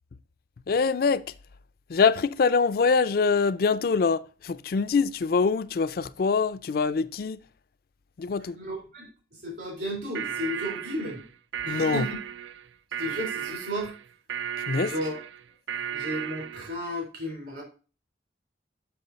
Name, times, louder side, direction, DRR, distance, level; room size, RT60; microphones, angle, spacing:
voice 1, 0.7-1.3 1.9-7.4 8.2-8.6 11.7-12.0 14.7-14.9, left 5 dB, 55° left, 0.4 m, -24 dB
voice 2, 8.5-11.2 11.6-12.2 13.0-13.9 14.8-15.2 15.9-17.6, equal, 65° right, 3.6 m, -34 dB
sound 1, 10.1-16.8, right 8 dB, 90° right, 0.4 m, -35 dB
6.7 x 5.8 x 4.0 m
head